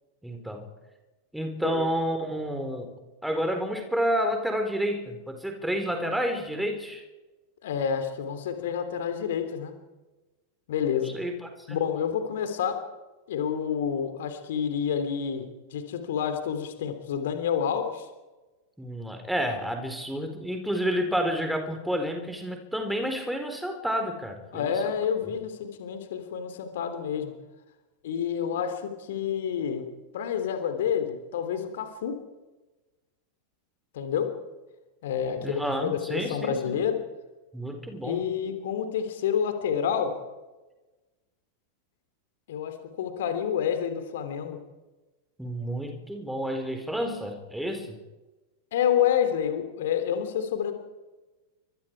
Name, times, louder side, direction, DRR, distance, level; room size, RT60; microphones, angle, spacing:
voice 1, 0.2-0.7 1.3-2.9 3.2-7.0 11.0-11.8 18.8-24.7 25.2-25.3 35.4-36.8 37.5-38.3 45.4-48.0, equal, ahead, 5 dB, 4.4 m, -30 dB
voice 2, 7.6-9.7 10.7-11.1 11.7-12.8 13.3-18.1 24.5-27.3 28.0-29.9 30.1-32.1 33.9-34.3 35.0-37.0 38.0-40.1 42.5-44.6 48.7-50.7, left 8 dB, 55° left, 7 dB, 3.2 m, -28 dB
29.5 x 25.0 x 4.8 m, 1.2 s
figure-of-eight pair, 90°, 0 cm